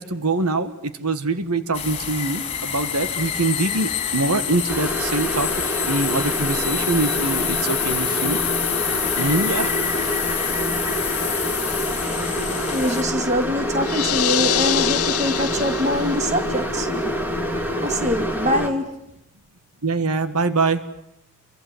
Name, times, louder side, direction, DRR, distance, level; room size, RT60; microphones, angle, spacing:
voice 1, 0.0-5.5 5.8-8.4 9.2-9.7 19.8-20.8, right 3 dB, 85° right, 11 dB, 1.7 m, -24 dB
sound 1, 1.7-13.0, left 8 dB, 25° left, 3.7 m, -27 dB
sound 2, 4.7-18.7, equal, 10° right, 2.6 m, -26 dB
voice 2, 12.7-17.1 17.8-19.0, equal, 30° right, 6 dB, 2.6 m, -24 dB
sound 3, 13.8-16.3, left 11 dB, 85° left, 1.0 m, -24 dB
28.5 x 23.5 x 8.0 m, 0.77 s
head